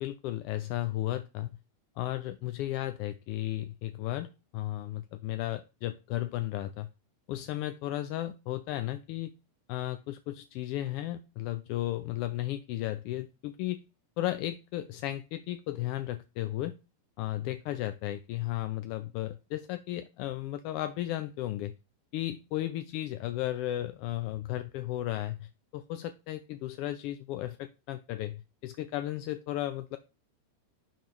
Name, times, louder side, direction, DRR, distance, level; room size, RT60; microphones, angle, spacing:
voice 1, 0.0-1.6 2.0-6.9 7.3-9.3 9.7-13.8 14.2-16.7 17.2-21.7 22.1-30.0, left 14 dB, 45° left, 11 dB, 0.3 m, -34 dB
5.5 x 3.5 x 4.8 m, 0.30 s
figure-of-eight pair, 90°, 0 cm